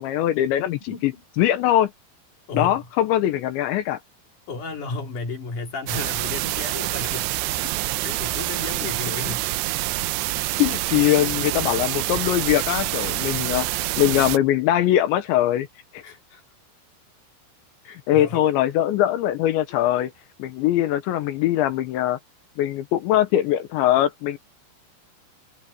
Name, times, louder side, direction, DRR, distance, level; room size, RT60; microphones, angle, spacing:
voice 1, 0.0-1.1 1.4-1.9 2.5-4.0 9.3-9.4 10.6-15.7 15.9-16.0 18.1-20.1 20.4-22.2 22.6-24.4, left 12 dB, 75° left, 3.2 m, -21 dB
voice 2, 0.9-1.2 2.5-2.9 4.5-7.3 7.8-9.4 11.1-11.2 13.0-13.6 16.0-16.4 17.8-18.5 19.7-19.8, left 4 dB, 45° left, 4.0 m, -34 dB
sound 1, 5.9-14.4, right 18 dB, 85° right, 2.6 m, -26 dB
omnidirectional pair, 5.7 m